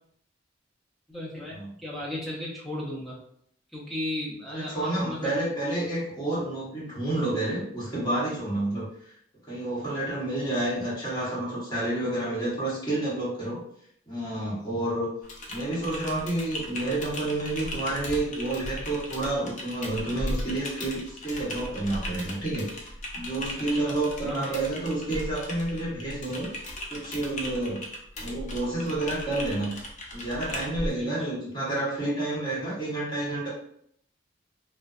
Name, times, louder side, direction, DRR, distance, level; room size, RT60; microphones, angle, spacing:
voice 1, 1.1-3.2 3.7-5.4 23.6-24.6 30.9-31.3, left 1 dB, ahead, -6 dB, 0.6 m, -36 dB
voice 2, 4.5-9.1 9.5-13.6 14.1-15.1 15.5-22.7 23.1-26.5 26.9-27.8 28.2-29.7 30.1-33.5, right 2 dB, 20° left, -8 dB, 1.1 m, -29 dB
Typing, 15.2-30.9, left 1 dB, 40° left, 0.4 m, -37 dB
2.5 x 2.1 x 2.3 m, 0.68 s
head